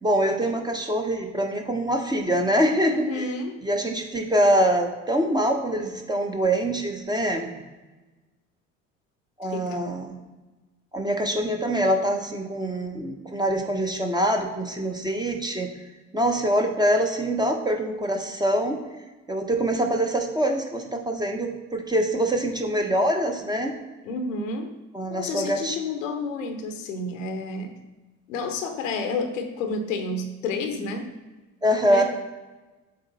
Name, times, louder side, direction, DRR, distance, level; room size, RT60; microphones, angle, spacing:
voice 1, 0.0-3.3 3.6-7.5 9.4-10.2 10.9-15.7 16.1-18.8 19.3-23.8 24.9-25.8 31.6-32.0, right 1 dB, 10° right, 3 dB, 0.9 m, -24 dB
voice 2, 2.9-3.6 9.5-9.8 24.0-24.7 25.1-27.7 28.3-31.1 31.8-32.0, left 3 dB, 75° left, 6 dB, 0.9 m, -30 dB
7.6 x 3.2 x 4.2 m, 1.2 s
figure-of-eight pair, 60°, 39 cm